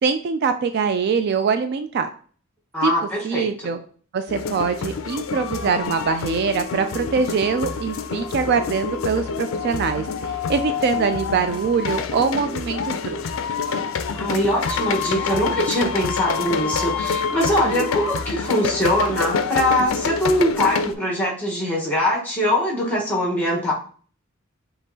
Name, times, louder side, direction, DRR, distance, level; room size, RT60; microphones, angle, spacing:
voice 1, 0.0-2.1 2.8-2.9 3.2-3.8 4.1-13.2 17.7-17.8, right 5 dB, 50° right, 9 dB, 0.3 m, -23 dB
voice 2, 2.7-3.5 14.1-23.7, equal, 10° left, -2 dB, 1.2 m, -22 dB
sound 1, 4.3-20.9, left 5 dB, 65° left, 0.4 m, -27 dB
5.3 x 2.9 x 2.8 m, 0.44 s
head